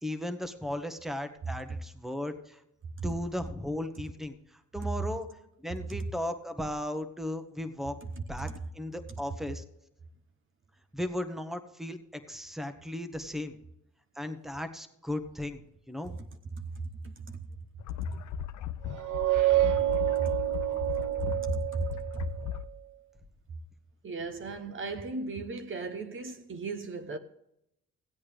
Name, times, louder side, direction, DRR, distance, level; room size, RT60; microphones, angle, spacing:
voice 1, 0.0-2.6 3.0-5.3 5.6-8.0 8.3-9.6 10.9-13.6 14.2-15.6 15.9-16.2, left 1 dB, ahead, 1.1 m, -36 dB
voice 2, 17.0-17.5 18.1-18.2 20.2-20.3 21.2-22.2 24.0-27.2, right 3 dB, 40° right, 0.9 m, -36 dB
sound 1, 17.8-22.6, left 11 dB, 70° left, 0.7 m, -37 dB
sound 2, 18.9-22.4, right 15 dB, 85° right, 0.9 m, -28 dB
16.0 x 8.5 x 3.4 m
cardioid pair, 90°, 30 cm